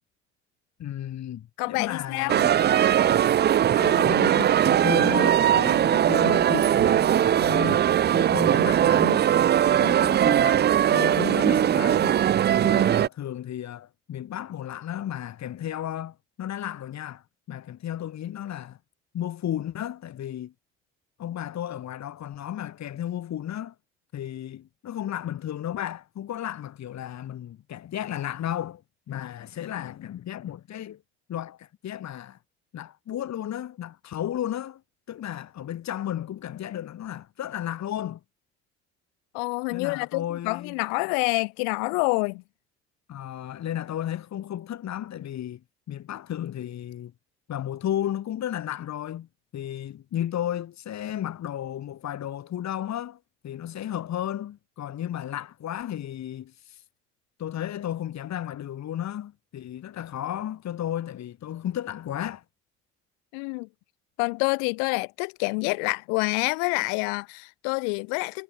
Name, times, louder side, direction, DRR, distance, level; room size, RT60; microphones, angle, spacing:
voice 1, 0.8-2.5 3.7-7.8 8.1-9.3 9.7-12.2 12.5-18.8 19.1-20.5 21.2-23.7 24.1-28.8 29.1-31.0 31.3-32.4 32.7-34.8 35.1-38.2 39.7-40.8 43.1-45.6 45.9-47.1 47.5-49.3 49.5-56.8 57.4-62.4, left 11 dB, 50° left, 3.5 m, -33 dB
voice 2, 1.6-2.4 39.3-42.4 63.3-63.7 64.2-68.4, left 40 dB or more, 75° left, 4.3 m, -27 dB
sound 1, 2.3-13.1, right 10 dB, 30° right, 0.5 m, -20 dB
hypercardioid pair, 55°, 34 cm